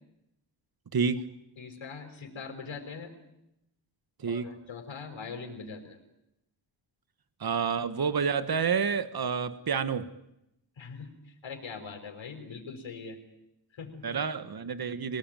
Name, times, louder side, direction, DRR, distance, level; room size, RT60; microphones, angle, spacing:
voice 1, 1.6-3.1 4.3-6.0 10.8-13.2 13.7-14.2, left 5 dB, 75° left, 3 dB, 5.5 m, -42 dB
voice 2, 7.4-10.1 14.0-15.2, right 6 dB, 50° right, 13 dB, 1.7 m, -29 dB
27.5 x 19.0 x 9.2 m, 0.83 s
wide cardioid pair, 95°, 46 cm